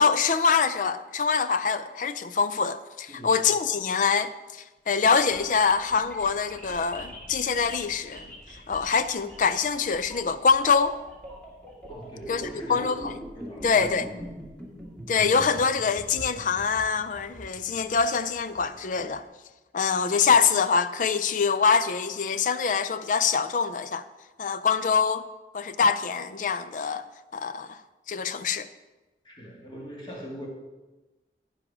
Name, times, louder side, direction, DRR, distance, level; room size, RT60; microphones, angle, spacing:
voice 1, 0.0-8.3 8.7-11.0 12.3-13.2 13.6-14.1 15.1-19.2 19.7-24.0 24.4-25.2 25.5-27.0 27.3-27.8 28.1-28.7, left 5 dB, 45° left, 0.4 m, -24 dB
voice 2, 3.1-3.4 11.9-12.9 13.4-14.1 29.2-30.5, equal, 25° left, 2.1 m, -41 dB
sound 1, 5.1-19.2, equal, 5° left, 1.7 m, -42 dB
9.9 x 9.8 x 3.6 m
head